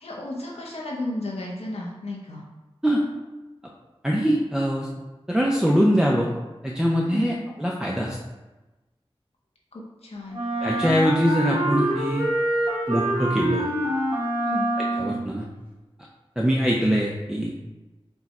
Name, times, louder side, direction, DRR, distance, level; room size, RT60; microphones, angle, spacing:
voice 1, 0.0-2.4 7.1-7.3 9.7-10.4 14.4-14.7, left 1 dB, 90° left, -3 dB, 0.7 m, -33 dB
voice 2, 4.0-4.9 5.3-6.3 6.6-8.2 10.6-12.3 12.9-13.7 15.0-15.5 16.4-17.5, equal, 5° right, -3 dB, 0.5 m, -23 dB
Wind instrument woodwind instrument, 10.3-15.4, right 1 dB, 55° right, 1.1 m, -25 dB
4.5 x 2.2 x 4.1 m, 1.1 s
wide cardioid pair, 50°, 10 cm